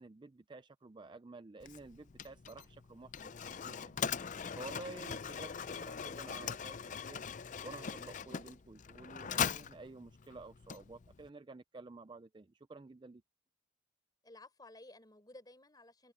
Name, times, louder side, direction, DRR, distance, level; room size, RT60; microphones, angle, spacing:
voice 1, 0.0-3.1 3.6-4.1 4.6-7.2 7.6-13.2, right 3 dB, 25° right, 0.4 m, -51 dB
Mechanisms, 1.6-11.3, left 7 dB, 40° left, 0.4 m, -41 dB
voice 2, 14.2-16.1, left 2 dB, 20° left, 4.3 m, -56 dB
head